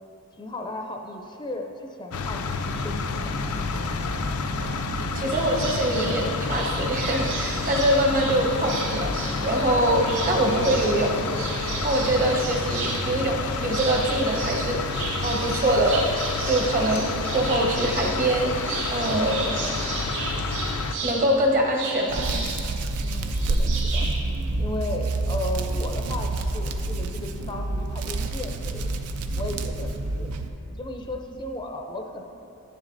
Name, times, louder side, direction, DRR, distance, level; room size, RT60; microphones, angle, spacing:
voice 1, 0.4-3.6 10.1-10.4 23.0-24.1 24.6-28.9 29.3-30.3 30.7-32.2, left 2 dB, 20° left, 3 dB, 0.4 m, -35 dB
sound 1, 2.1-20.9, left 3 dB, 80° left, 0.5 m, -29 dB
voice 2, 5.2-11.2 11.8-17.0 17.3-18.5 18.9-19.5 21.0-22.3, right 1 dB, 40° right, 1 dB, 0.9 m, -24 dB
sound 2, 5.3-24.2, right 4 dB, 60° right, 2.2 m, -34 dB
Hands, 22.1-30.5, right 2 dB, 90° right, 0.5 m, -28 dB
10.5 x 10.0 x 2.6 m, 2.8 s
head